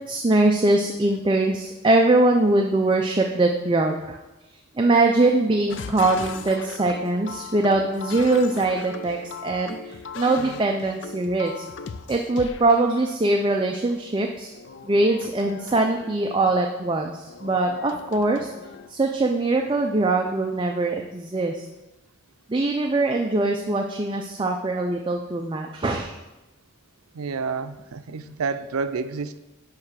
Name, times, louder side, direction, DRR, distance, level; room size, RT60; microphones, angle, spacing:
voice 1, 0.1-4.2 4.8-11.6 12.1-14.5 14.8-18.5 18.9-21.7 22.5-26.2, right 2 dB, 20° right, 2 dB, 0.4 m, -22 dB
sound 1, 5.7-12.7 14.5-16.2 17.3-18.9 19.5-19.8, left 5 dB, 55° left, 0.4 m, -38 dB
voice 2, 27.1-29.4, right 5 dB, 90° right, 11 dB, 0.5 m, -29 dB
9.6 x 3.2 x 6.1 m, 1.0 s
head